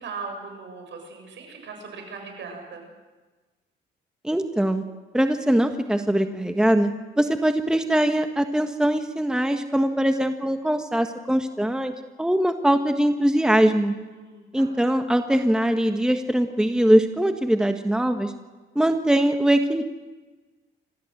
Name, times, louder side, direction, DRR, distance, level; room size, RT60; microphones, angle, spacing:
voice 1, 0.0-2.9 14.1-14.8, right 4 dB, 65° right, 4 dB, 7.0 m, -39 dB
voice 2, 4.2-4.8 5.1-6.9 7.2-11.9 12.2-13.9 14.5-18.3 18.7-19.8, right 1 dB, 5° right, 6 dB, 1.4 m, -22 dB
27.5 x 14.5 x 7.8 m, 1.3 s
cardioid pair, 90°, 20 cm